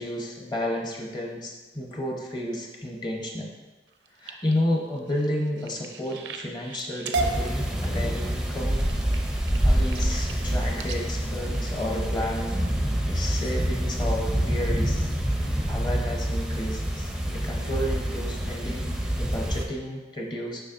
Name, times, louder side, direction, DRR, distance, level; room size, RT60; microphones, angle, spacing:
voice 1, 0.0-3.5 4.2-8.9 9.6-12.6 13.0-18.9 19.1-20.6, left 1 dB, 25° left, -1 dB, 0.8 m, -32 dB
sound 1, 3.9-12.6 13.2-13.5 13.9-14.3 14.7-14.8 15.2-15.3, right 3 dB, 75° right, 0.5 m, -37 dB
sound 2, 7.2-19.7, equal, 5° right, 0.5 m, -26 dB
7.0 x 5.7 x 2.5 m, 1.2 s
head